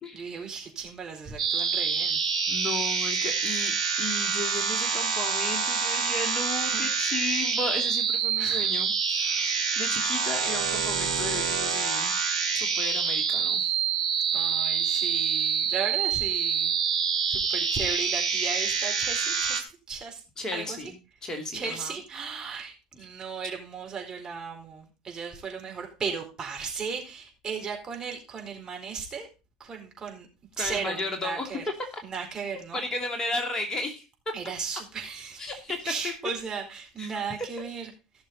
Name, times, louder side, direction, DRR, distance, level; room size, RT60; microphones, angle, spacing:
voice 1, 0.1-2.2 6.6-6.9 8.4-8.7 9.2-9.6 14.3-16.7 17.3-20.2 20.5-20.8 21.5-29.3 29.6-30.3 30.6-31.6 32.0-32.8 34.3-37.9, right 5 dB, 25° right, 1 dB, 4.4 m, -36 dB
sound 1, 1.4-19.6, right 6 dB, 75° right, 2.3 m, -27 dB
voice 2, 2.5-9.5 9.8-12.2 12.5-13.8 20.4-20.9 21.2-21.9 30.6-31.5 32.7-34.0 35.4-35.8 36.0-36.1 37.0-37.2, left 2 dB, 25° left, 4 dB, 2.6 m, -34 dB
17.0 x 6.6 x 4.1 m, 0.30 s
figure-of-eight pair, 75°, 3 cm